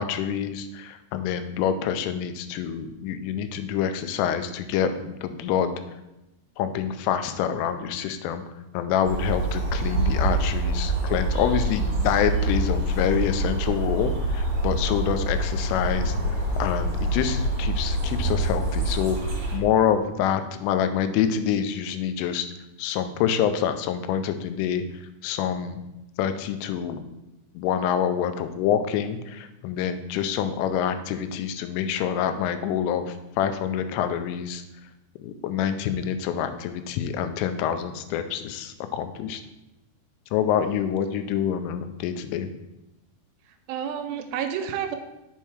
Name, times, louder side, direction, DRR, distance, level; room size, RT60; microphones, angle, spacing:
voice 1, 0.0-5.8 6.6-8.4 8.7-16.2 16.6-22.5 22.8-24.8 25.2-25.8 26.2-27.0 27.6-34.6 35.2-39.4 40.3-42.5, left 8 dB, 90° left, 9 dB, 3.1 m, -26 dB
sound 1, 9.0-19.6, right 1 dB, 50° right, 2.4 m, -26 dB
voice 2, 40.5-40.9 43.5-45.0, right 8 dB, 80° right, 6 dB, 2.9 m, -31 dB
7.3 x 4.5 x 4.5 m, 0.93 s
omnidirectional pair, 5.5 m